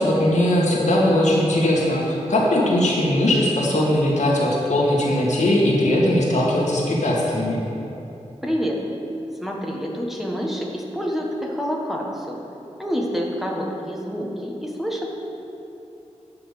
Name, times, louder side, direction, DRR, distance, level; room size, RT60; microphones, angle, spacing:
voice 1, 0.0-7.6, left 1 dB, 80° left, -4 dB, 1.9 m, -19 dB
voice 2, 8.4-8.8 9.4-12.4 12.8-15.1, equal, ahead, -2 dB, 1.3 m, -27 dB
10.0 x 5.8 x 6.8 m, 2.9 s
wide cardioid pair, 100°, 12 cm